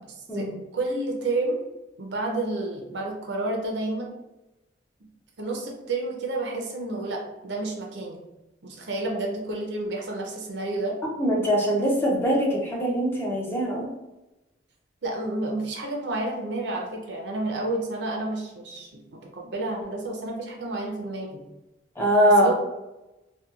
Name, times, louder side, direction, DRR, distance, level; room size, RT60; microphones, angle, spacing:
voice 1, 0.3-1.6 2.0-4.1 5.4-8.2 8.6-11.0 15.0-21.3 22.4-22.5, right 2 dB, 65° right, 0 dB, 0.6 m, -30 dB
voice 2, 11.2-13.9 22.0-22.5, equal, 10° left, -3 dB, 0.5 m, -22 dB
2.8 x 2.2 x 2.3 m, 0.98 s
head